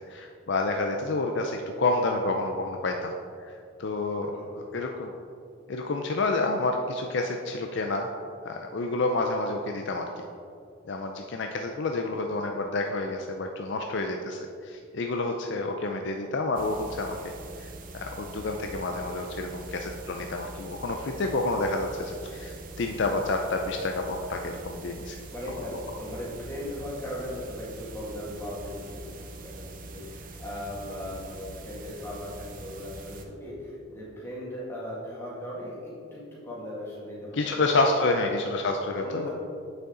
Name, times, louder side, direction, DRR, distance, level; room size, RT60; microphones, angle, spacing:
voice 1, 0.1-3.1 3.4-5.1 5.7-8.1 8.4-10.1 10.9-17.2 17.6-25.2 37.3-39.3, left 2 dB, 55° left, 3 dB, 0.5 m, -29 dB
sound 1, 16.5-33.2, right 2 dB, 40° right, 0.6 m, -43 dB
voice 2, 25.3-29.0 29.3-38.0 39.0-39.3, left 1 dB, 10° left, -6 dB, 2.0 m, -38 dB
8.2 x 6.6 x 3.9 m, 2.3 s
head